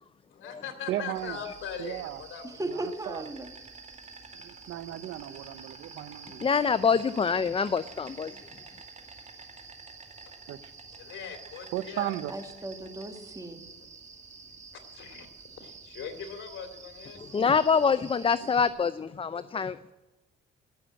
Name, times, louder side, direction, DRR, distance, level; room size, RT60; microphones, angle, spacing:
voice 1, 0.3-2.5 11.0-12.1 13.4-13.5 14.5-15.3 15.6-17.3, left 7 dB, 75° left, 7 dB, 2.5 m, -41 dB
voice 2, 0.9-1.4 1.8-2.2 2.7-3.3 4.3-6.6 10.5-10.7 11.7-12.3, right 13 dB, 90° right, 16 dB, 0.7 m, -36 dB
Insect, 1.1-18.7, right 4 dB, 35° right, 2.4 m, -48 dB
voice 3, 2.6-3.5 5.9-6.1 12.3-13.6, right 2 dB, 15° right, 6 dB, 2.1 m, -36 dB
voice 4, 6.4-8.3 17.3-19.9, left 6 dB, 25° left, 14 dB, 0.5 m, -25 dB
16.0 x 6.9 x 8.9 m, 1.1 s
cardioid pair, 90°, 20 cm